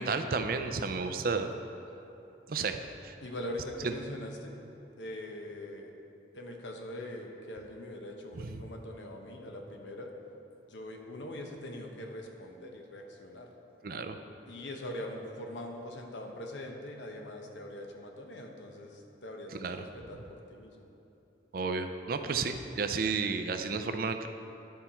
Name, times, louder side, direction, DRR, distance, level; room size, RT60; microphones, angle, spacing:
voice 1, 0.0-1.5 2.5-3.1 3.8-3.9 13.8-14.2 19.5-19.8 21.5-24.3, right 4 dB, 50° right, 8 dB, 0.4 m, -32 dB
voice 2, 3.2-4.6 5.0-5.9 6.3-10.1 10.7-13.5 14.5-20.9, left 1 dB, 85° left, 2 dB, 1.0 m, -42 dB
11.0 x 5.6 x 4.4 m, 3.0 s
head